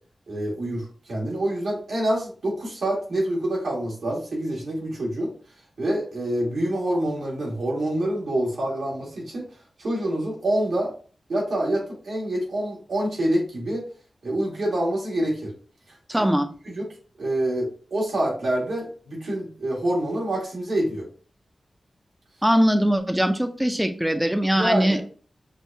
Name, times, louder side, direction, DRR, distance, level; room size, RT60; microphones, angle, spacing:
voice 1, 0.3-5.3 5.8-9.4 9.8-10.9 11.3-13.8 14.2-15.5 16.1-16.3 16.6-16.9 17.2-21.1 24.6-25.0, right 1 dB, 85° right, -4 dB, 1.9 m, -26 dB
voice 2, 16.1-16.5 22.4-25.0, equal, 5° right, 7 dB, 0.5 m, -21 dB
6.2 x 2.2 x 2.7 m, 0.40 s
wide cardioid pair, 135°, 0 cm